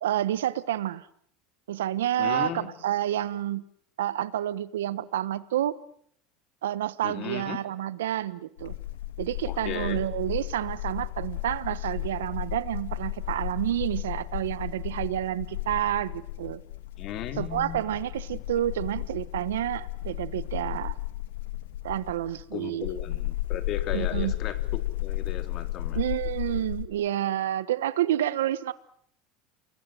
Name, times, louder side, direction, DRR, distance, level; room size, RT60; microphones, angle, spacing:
voice 1, 0.0-1.1 1.7-3.7 4.0-5.8 6.6-8.7 9.2-16.6 17.4-20.9 21.8-22.9 23.9-24.3 25.9-28.7, right 12 dB, 90° right, 1.2 m, -29 dB
voice 2, 2.2-2.7 7.0-7.6 9.4-10.0 17.0-18.0 18.3-18.4 22.5-26.0, left 10 dB, 50° left, 3.8 m, -36 dB
sound 1, 8.6-26.9, left 16 dB, 85° left, 2.2 m, -34 dB
29.0 x 22.0 x 7.8 m
supercardioid pair, 100°, 0 cm